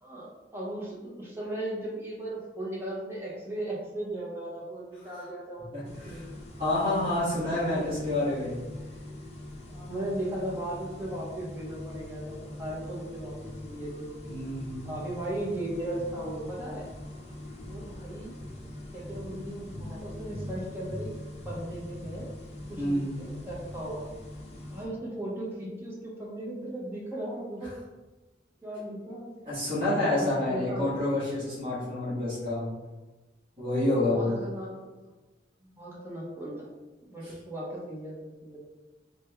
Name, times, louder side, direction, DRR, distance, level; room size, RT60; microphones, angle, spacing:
voice 1, 0.0-6.2 7.7-7.9 9.7-13.3 13.6-14.1 14.8-16.8 17.7-18.3 18.9-21.1 21.4-22.3 22.7-24.1 24.7-27.7 28.6-29.4 30.1-30.9 34.1-34.9 35.7-36.7 37.1-38.6, right 1 dB, 15° right, -5 dB, 0.8 m, -37 dB
voice 2, 5.7-6.2 6.6-8.6 14.2-14.9 22.8-23.2 29.4-32.7 33.6-34.3, left 1 dB, 30° right, -10 dB, 1.3 m, -28 dB
sound 1, 5.8-24.9, left 1 dB, 35° left, 0.5 m, -42 dB
3.4 x 2.2 x 3.2 m, 1.2 s
head